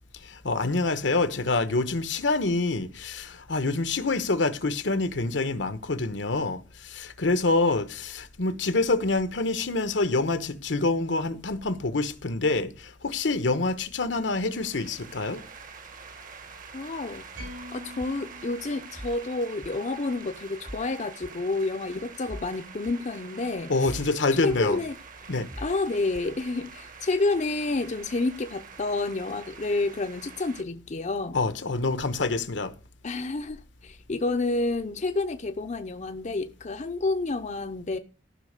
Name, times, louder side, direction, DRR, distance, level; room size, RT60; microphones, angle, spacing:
voice 1, 0.2-15.4 23.7-24.8 25.3-25.5 31.3-32.7, left 3 dB, 75° left, 1.1 m, -26 dB
sound 1, 14.4-30.6, right 6 dB, 45° right, 1.3 m, -46 dB
voice 2, 16.7-17.3 17.7-24.0 24.3-24.9 25.6-31.4 33.0-38.0, left 3 dB, 40° left, 0.7 m, -29 dB
sound 2, 17.3-19.7, left 1 dB, 75° right, 4.4 m, -46 dB
sound 3, 17.4-17.6 18.0-18.1 19.0-19.2 19.6-19.7 20.6-20.9 21.2-21.3 22.3-22.5 22.9-23.0 23.9-24.1 24.5-24.6 25.5-25.8 26.1-26.3, equal, 5° right, 0.5 m, -40 dB
14.0 x 5.9 x 6.6 m
head